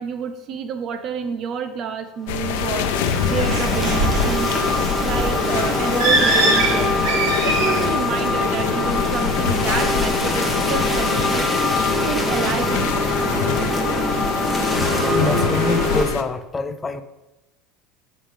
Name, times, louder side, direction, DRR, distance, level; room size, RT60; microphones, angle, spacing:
voice 1, 0.0-3.0 3.3-4.6 5.0-6.9 7.4-11.5 12.0-13.2, right 6 dB, 50° right, 10 dB, 0.7 m, -28 dB
sound 1, 2.3-16.2, left 8 dB, 80° left, 0.7 m, -26 dB
sound 2, 2.3-16.0, left 1 dB, ahead, 1.5 m, -23 dB
Bird, 2.9-7.9, right 2 dB, 75° right, 2.6 m, -23 dB
voice 2, 15.1-17.0, left 4 dB, 20° left, 11 dB, 0.7 m, -25 dB
14.0 x 5.2 x 3.5 m, 1.0 s
supercardioid pair, 100°, 0 cm